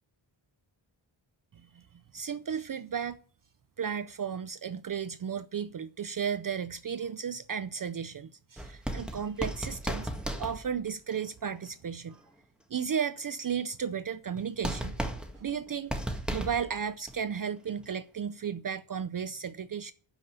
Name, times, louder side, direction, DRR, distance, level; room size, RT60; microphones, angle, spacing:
voice 1, 2.1-3.2 3.8-10.1 10.4-12.2 12.7-15.0 15.4-15.9 16.3-19.9, right 7 dB, 45° right, 0.5 m, -34 dB
sound 1, 8.6-11.1 14.4-14.5 14.6-16.8 17.1-17.2, right 1 dB, ahead, 1.8 m, -35 dB
12.0 x 5.5 x 8.1 m
wide cardioid pair, 95°, 47 cm